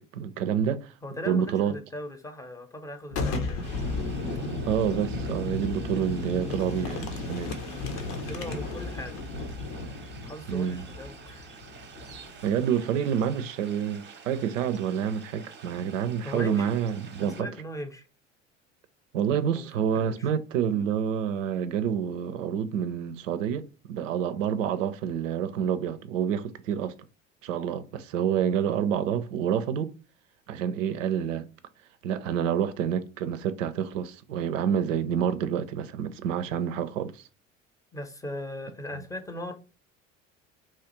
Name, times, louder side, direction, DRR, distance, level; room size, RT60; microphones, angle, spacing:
voice 1, 0.0-0.9 1.3-1.7 4.7-7.6 10.5-10.8 12.4-17.5 19.1-26.9 27.4-29.9 30.5-31.5 32.0-37.2, right 8 dB, 80° right, 0.5 m, -28 dB
voice 2, 1.0-3.8 8.2-9.2 10.2-11.6 16.2-16.7 17.2-18.1 19.5-19.7 19.9-20.3 37.9-39.5, left 1 dB, 10° left, 0.7 m, -39 dB
Boom, 3.1-12.7, left 3 dB, 60° left, 0.8 m, -34 dB
sound 1, 3.6-17.4, right 5 dB, 30° right, 0.7 m, -49 dB
3.1 x 2.3 x 2.9 m
hypercardioid pair, 65°, 38 cm